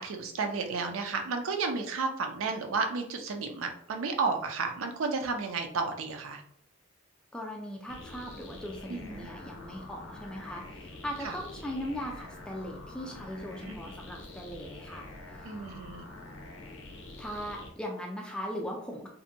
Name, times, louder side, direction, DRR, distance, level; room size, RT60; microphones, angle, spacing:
voice 1, 0.0-6.4 8.9-9.3 11.2-11.4 13.7-13.8 15.4-16.1, right 4 dB, 90° right, 5 dB, 0.5 m, -32 dB
voice 2, 7.3-15.6 17.2-19.1, equal, 5° left, 0 dB, 0.3 m, -39 dB
sound 1, 7.9-17.7, left 2 dB, 75° left, 0.5 m, -46 dB
2.6 x 2.1 x 2.6 m, 0.63 s
head